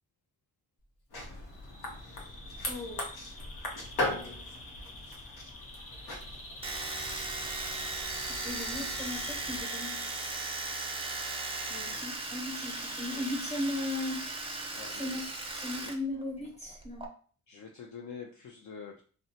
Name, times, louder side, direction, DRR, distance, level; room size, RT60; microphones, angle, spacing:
sound 1, 1.1-9.6, left 1 dB, 85° left, 0.9 m, -40 dB
Bird vocalization bird call bird song, 1.5-15.5, left 2 dB, 40° left, 0.8 m, -48 dB
voice 1, 2.6-3.1 8.3-10.0 11.7-14.3 14.9-15.3 15.5-17.0, left 1 dB, 15° left, -2 dB, 1.1 m, -37 dB
Domestic sounds home sounds, 6.6-16.0 16.2-17.1, right 3 dB, 15° right, 0.4 m, -37 dB
voice 2, 14.7-15.2 15.7-15.9 17.5-19.0, left 6 dB, 55° left, 1 dB, 0.4 m, -46 dB
2.6 x 2.1 x 2.7 m, 0.41 s
cardioid pair, 85°, 37 cm